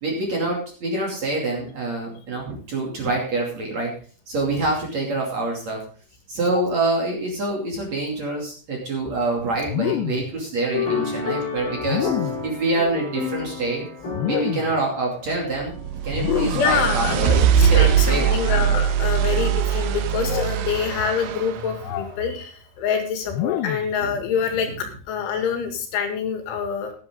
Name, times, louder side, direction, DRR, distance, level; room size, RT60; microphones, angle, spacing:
voice 1, 0.0-3.9 4.3-5.8 6.3-12.1 12.4-13.8 14.3-15.8 16.0-18.7 24.0-24.1, right 2 dB, 40° right, -1 dB, 3.2 m, -26 dB
sound 1, 9.6-10.4 11.8-12.5 14.1-14.8 16.1-16.8 18.4-18.8 20.2-20.7 21.8-22.2 23.3-24.0, left 13 dB, 90° left, 2.4 m, -27 dB
sound 2, 10.7-16.3, left 5 dB, 30° left, 3.4 m, -30 dB
sound 3, 15.6-21.7, right 9 dB, 75° right, 3.3 m, -21 dB
voice 2, 16.5-26.9, left 6 dB, 70° left, 5 dB, 4.3 m, -26 dB
15.5 x 9.7 x 3.8 m, 0.40 s
omnidirectional pair, 5.7 m